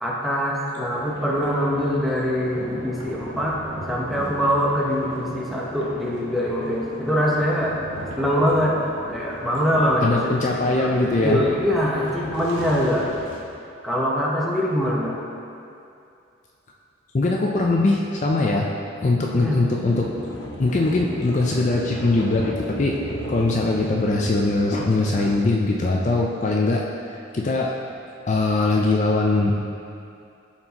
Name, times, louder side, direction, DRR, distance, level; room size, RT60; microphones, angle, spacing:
voice 1, 0.0-3.6 3.9-7.8 8.1-8.8 9.1-13.1 13.8-15.1 19.4-19.6, equal, ahead, -5 dB, 0.8 m, -23 dB
sound 1, 0.9-13.4, right 1 dB, 85° right, 1.1 m, -37 dB
voice 2, 10.0-11.4 17.1-18.7 19.0-20.1 20.6-23.0 23.3-27.7 28.3-29.7, left 2 dB, 35° left, -1 dB, 0.4 m, -21 dB
sound 2, 19.9-25.4, equal, 85° left, 1.0 m, -33 dB
12.5 x 4.4 x 2.9 m, 2.5 s
head